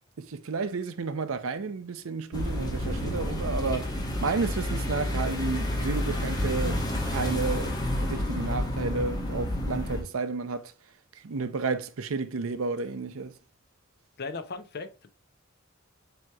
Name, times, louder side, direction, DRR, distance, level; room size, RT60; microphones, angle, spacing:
voice 1, 0.2-3.9 4.2-6.8 7.1-7.7 8.0-10.7 11.2-13.3, right 4 dB, 85° right, 0.6 m, -31 dB
sound 1, 2.3-10.0, left 1 dB, 20° left, 1.1 m, -30 dB
voice 2, 14.2-15.1, left 4 dB, 50° left, 0.7 m, -37 dB
7.5 x 2.9 x 2.3 m
head